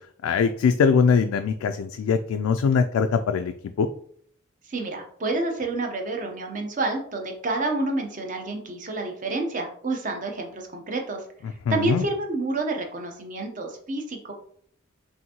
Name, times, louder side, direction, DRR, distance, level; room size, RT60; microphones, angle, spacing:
voice 1, 0.2-3.5 3.8-3.9 11.7-12.0, left 5 dB, 90° left, 7 dB, 0.3 m, -22 dB
voice 2, 4.7-11.2 11.7-14.3, right 2 dB, 40° right, 3 dB, 0.7 m, -29 dB
5.6 x 2.6 x 2.8 m, 0.62 s
head